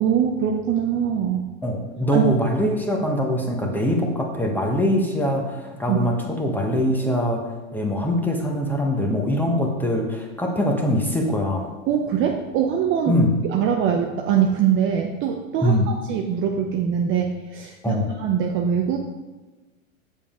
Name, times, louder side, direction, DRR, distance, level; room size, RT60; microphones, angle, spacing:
voice 1, 0.0-1.4 2.1-2.3 5.9-6.0 11.9-13.2 13.5-19.0, right 8 dB, 30° right, 3 dB, 0.6 m, -23 dB
voice 2, 1.6-7.4 7.7-11.7 13.1-13.3 15.6-15.9 17.8-18.1, equal, 5° left, 1 dB, 1.1 m, -23 dB
7.3 x 6.8 x 3.8 m, 1.2 s
hypercardioid pair, 115°, 42 cm